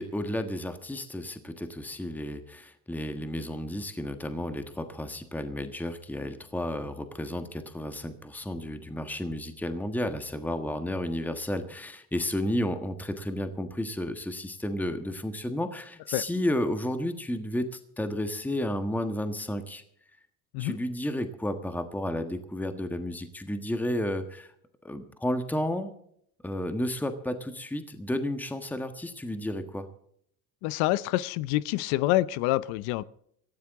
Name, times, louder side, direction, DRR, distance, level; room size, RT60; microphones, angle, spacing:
voice 1, 0.0-19.8 20.6-24.5 24.8-25.9 26.4-29.9, left 1 dB, 5° left, 7 dB, 1.4 m, -32 dB
voice 2, 30.6-33.0, left 17 dB, 80° left, 19 dB, 0.7 m, -27 dB
19.0 x 14.5 x 3.7 m, 0.70 s
supercardioid pair, 110°, 39 cm